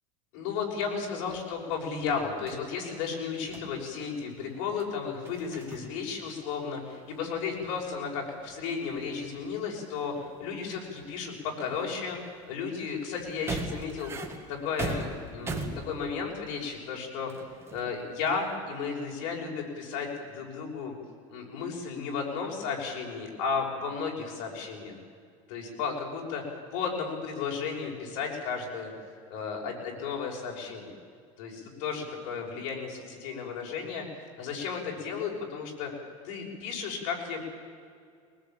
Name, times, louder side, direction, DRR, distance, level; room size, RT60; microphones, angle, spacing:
voice 1, 0.3-17.3 17.7-20.9 21.3-24.9 25.5-26.4 26.7-28.9 29.3-30.9 31.4-35.9 36.2-37.4, left 5 dB, 60° left, 0 dB, 6.1 m, -34 dB
sound 1, 0.9-2.7 3.5-3.8 4.8-4.9 5.2-5.9 6.2-16.8 17.2-18.6, right 2 dB, 15° right, 2.1 m, -41 dB
21.5 x 19.5 x 9.1 m, 2.2 s
cardioid pair, 160°, 16 cm